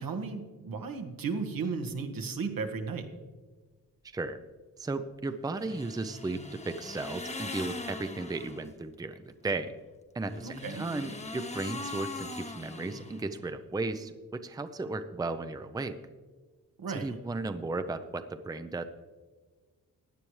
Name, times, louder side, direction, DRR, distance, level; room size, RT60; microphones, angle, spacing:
voice 1, 0.0-3.1 10.4-10.9 16.8-17.1, right 5 dB, 75° right, 5 dB, 1.4 m, -35 dB
voice 2, 4.0-4.4 4.8-9.7 10.1-16.0 16.9-18.8, right 3 dB, 10° right, 10 dB, 0.5 m, -35 dB
sound 1, 5.6-8.7 10.2-13.5, left 2 dB, 20° left, 0.9 m, -41 dB
16.0 x 9.9 x 3.2 m, 1.4 s
cardioid pair, 95°, 35 cm